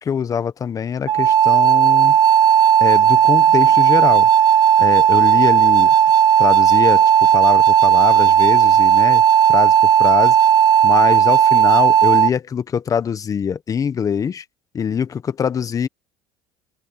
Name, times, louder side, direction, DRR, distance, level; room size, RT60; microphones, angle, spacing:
voice 1, 0.0-2.2 2.8-4.3 4.8-5.9 6.4-9.2 9.5-10.4 10.8-14.4 14.7-15.9, left 7 dB, 35° left, 1.4 m, -23 dB
sound 1, 1.1-12.3, right 9 dB, 45° right, 0.7 m, -13 dB
supercardioid pair, 90°, 10 cm